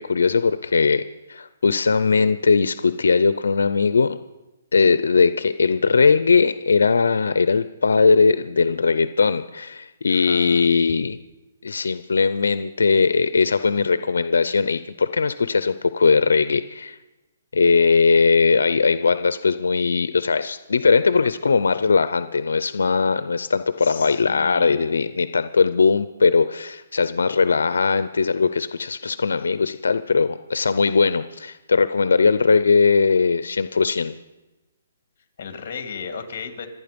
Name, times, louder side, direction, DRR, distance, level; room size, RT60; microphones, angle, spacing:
voice 1, 0.0-4.2 4.7-11.2 11.6-17.0 17.5-34.1, left 4 dB, 90° left, 13 dB, 0.6 m, -19 dB
voice 2, 10.1-10.7 23.8-25.0 35.4-36.7, left 6 dB, 45° left, 7 dB, 2.5 m, -35 dB
26.0 x 9.6 x 5.2 m, 1.1 s
hypercardioid pair, 160°, 0 cm